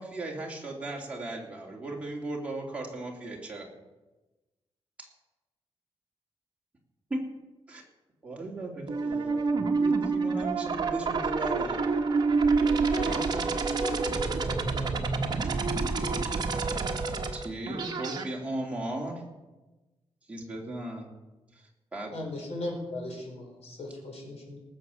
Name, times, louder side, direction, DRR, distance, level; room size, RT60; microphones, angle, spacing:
voice 1, 0.0-3.7 5.0-5.1 7.1-7.2 7.7-7.8 8.2-9.4 9.7-11.8 13.0-13.4 17.3-19.2 20.3-21.1 21.9-22.1, right 2 dB, 10° right, -2 dB, 2.9 m, -36 dB
sound 1, 8.9-18.2, right 4 dB, 40° right, 1.3 m, -28 dB
voice 2, 12.9-15.6 15.9-16.4, left 2 dB, 25° left, -4 dB, 6.7 m, -43 dB
voice 3, 22.1-24.6, left 1 dB, 70° left, -1 dB, 4.7 m, -37 dB
18.5 x 7.4 x 7.1 m, 1.1 s
wide cardioid pair, 165°, 11 cm